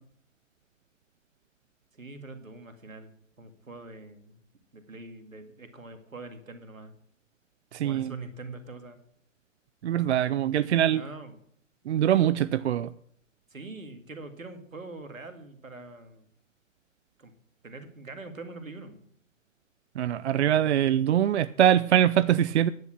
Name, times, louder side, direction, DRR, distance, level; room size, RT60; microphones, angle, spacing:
voice 1, 1.9-4.4 4.7-6.9 7.8-9.0 10.9-11.4 13.5-16.3 17.2-17.3 17.6-19.0, right 3 dB, 85° right, 7 dB, 2.2 m, -43 dB
voice 2, 7.7-8.1 9.8-11.0 11.9-12.9 20.0-22.7, right 10 dB, 55° right, 15 dB, 0.5 m, -23 dB
10.5 x 8.4 x 5.9 m, 0.65 s
figure-of-eight pair, 120°, 39 cm